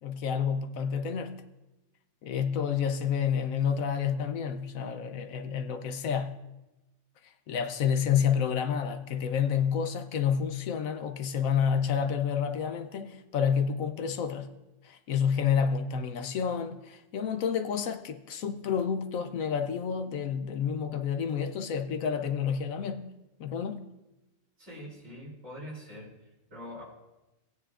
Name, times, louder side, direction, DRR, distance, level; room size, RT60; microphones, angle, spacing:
voice 1, 0.0-1.4 2.2-6.4 7.5-14.5 14.8-23.1 23.4-23.9, left 7 dB, 70° left, 1.0 m, -29 dB
voice 2, 24.6-26.1 26.5-26.8, equal, 60° right, 3.8 m, -43 dB
17.5 x 9.5 x 2.5 m
omnidirectional pair, 1.5 m